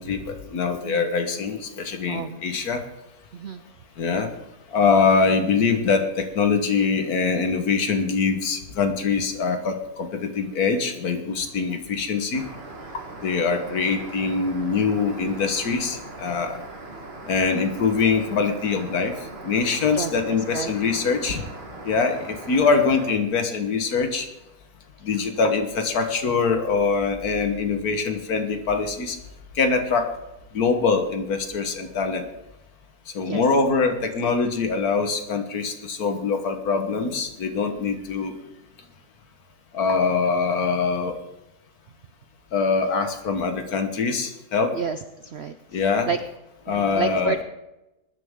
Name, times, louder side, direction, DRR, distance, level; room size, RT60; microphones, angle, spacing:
voice 1, 0.0-2.8 4.0-4.3 4.7-12.4 13.2-16.6 17.3-19.1 19.4-21.4 21.9-24.3 25.0-29.2 29.6-30.1 30.5-32.2 33.2-38.3 39.7-41.2 42.5-44.7 45.7-46.1 46.7-47.4, left 5 dB, 65° left, 6 dB, 1.7 m, -23 dB
sound 1, 12.3-23.1, right 2 dB, 40° right, 1.8 m, -40 dB
voice 2, 19.9-20.7 33.2-33.4 34.2-34.3 44.7-46.2 46.7-47.4, right 6 dB, 65° right, 10 dB, 0.6 m, -31 dB
20.5 x 10.0 x 3.7 m, 0.97 s
omnidirectional pair, 1.8 m